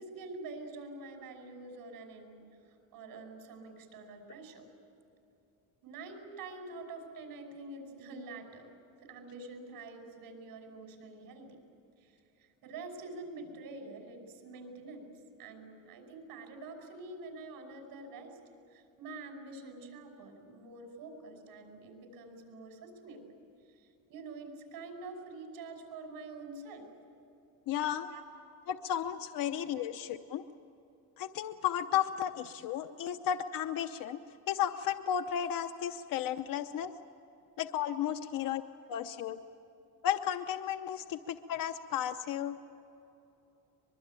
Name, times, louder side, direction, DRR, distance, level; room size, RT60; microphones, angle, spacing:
voice 1, 0.0-4.7 5.8-8.7 9.0-11.6 12.0-15.1 15.4-18.4 18.7-23.2 23.8-26.9 28.1-28.4 29.4-29.8 38.2-38.5 41.1-41.2, right 3 dB, 75° right, 4 dB, 5.6 m, -47 dB
voice 2, 27.7-28.1 28.7-30.4 31.2-34.2 34.5-36.9 37.6-38.6 38.9-39.4 40.0-42.6, left 10 dB, 70° left, 8 dB, 0.9 m, -33 dB
23.5 x 22.5 x 9.0 m, 2.9 s
cardioid pair, 150°, 36 cm